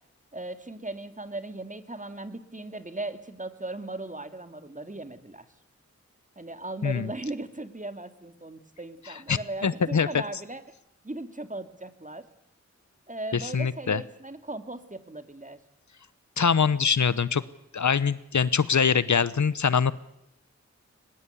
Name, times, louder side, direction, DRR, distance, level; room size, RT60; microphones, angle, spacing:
voice 1, 0.3-5.5 6.4-10.6 11.0-12.2 13.1-15.6, right 2 dB, 25° right, 9 dB, 2.4 m, -38 dB
voice 2, 9.1-10.2 13.3-14.0 16.4-17.4 17.7-19.9, left 6 dB, 75° left, 17 dB, 0.9 m, -24 dB
23.0 x 21.0 x 8.3 m, 0.78 s
cardioid pair, 40°, 29 cm